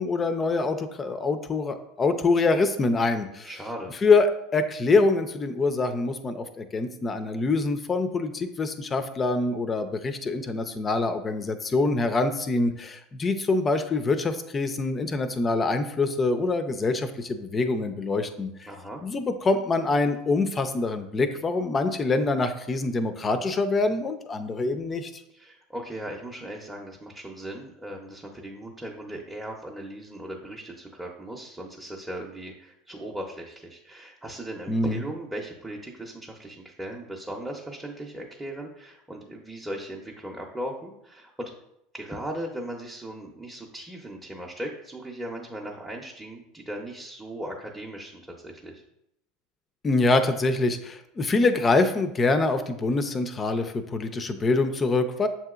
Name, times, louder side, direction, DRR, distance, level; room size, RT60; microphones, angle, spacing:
voice 1, 0.0-3.5 4.0-18.7 19.0-25.2 34.7-35.0 49.8-55.3, left 3 dB, 25° left, 9 dB, 0.5 m, -25 dB
voice 2, 3.4-4.0 18.7-19.0 25.3-41.5 41.9-48.8, right 1 dB, 10° right, -2 dB, 0.7 m, -38 dB
7.3 x 2.8 x 2.4 m, 0.80 s
hypercardioid pair, 90°, 0 cm